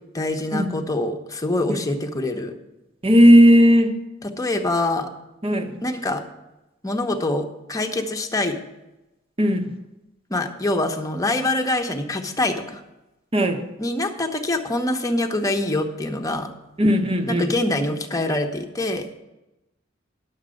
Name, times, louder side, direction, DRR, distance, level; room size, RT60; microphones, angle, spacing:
voice 1, 0.1-2.5 4.2-5.1 5.8-6.2 6.8-8.6 10.3-12.8 13.8-16.5 17.3-19.1, left 2 dB, 20° left, 4 dB, 1.0 m, -25 dB
voice 2, 3.0-4.0 5.4-5.8 9.4-9.7 13.3-13.7 16.8-17.5, equal, 30° right, 6 dB, 1.0 m, -16 dB
10.5 x 7.4 x 6.4 m, 0.97 s
head